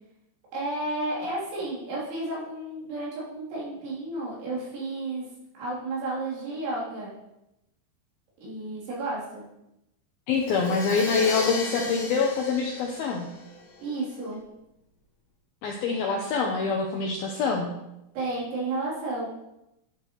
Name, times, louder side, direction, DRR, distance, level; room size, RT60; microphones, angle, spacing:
voice 1, 0.5-5.3 5.5-7.1 8.4-9.4 13.8-14.4 18.2-19.3, right 2 dB, 80° right, -7 dB, 6.0 m, -32 dB
voice 2, 10.3-13.3 15.6-17.7, left 5 dB, 80° left, 0 dB, 2.2 m, -25 dB
Crash cymbal, 10.3-14.1, left 3 dB, 60° left, 1.4 m, -35 dB
12.5 x 8.4 x 3.2 m, 0.87 s
omnidirectional pair, 5.4 m